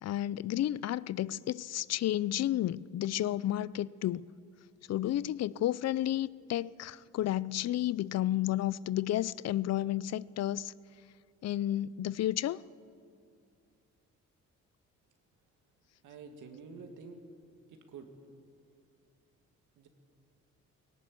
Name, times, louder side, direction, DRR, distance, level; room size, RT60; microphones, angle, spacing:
voice 1, 0.0-4.2 4.9-10.7 11.4-12.6, left 13 dB, 60° left, 0.5 m, -32 dB
voice 2, 16.0-17.2 17.7-18.1 19.8-19.9, right 5 dB, 80° right, 2.3 m, -48 dB
18.0 x 18.0 x 8.3 m
cardioid pair, 90°, 30 cm